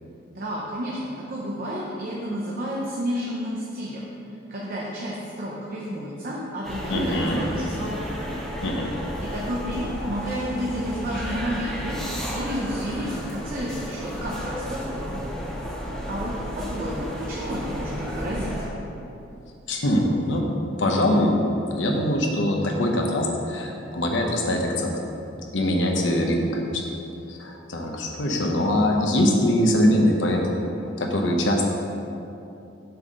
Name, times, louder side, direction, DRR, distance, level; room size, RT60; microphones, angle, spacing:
voice 1, 0.3-4.1 4.5-8.4 9.2-15.2 16.1-18.8, equal, 45° right, -4 dB, 0.8 m, -31 dB
sound 1, 6.6-18.7, equal, ahead, 1.7 m, -33 dB
voice 2, 6.9-7.4 8.6-8.9 19.7-20.4 20.8-21.3 21.7-24.9 25.5-26.9 27.3-30.5 30.8-31.7, left 1 dB, 70° left, 1 dB, 1.0 m, -23 dB
6.9 x 4.2 x 6.3 m, 2.8 s
head